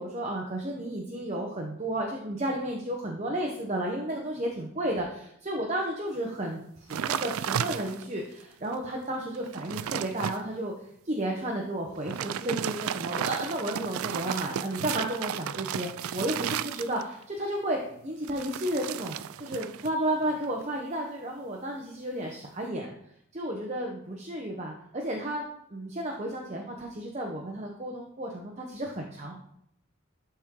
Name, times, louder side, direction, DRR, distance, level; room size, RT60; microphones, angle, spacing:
voice 1, 0.0-6.6 6.9-10.7 11.0-22.9 23.3-25.4 25.7-29.4, right 1 dB, 30° right, 0 dB, 0.9 m, -32 dB
sound 1, 6.9-8.2 8.7-8.8 9.3-10.4 12.0-17.2 18.2-19.9 20.2-20.6, right 9 dB, 80° right, 0.3 m, -33 dB
11.5 x 4.4 x 3.7 m, 0.71 s
head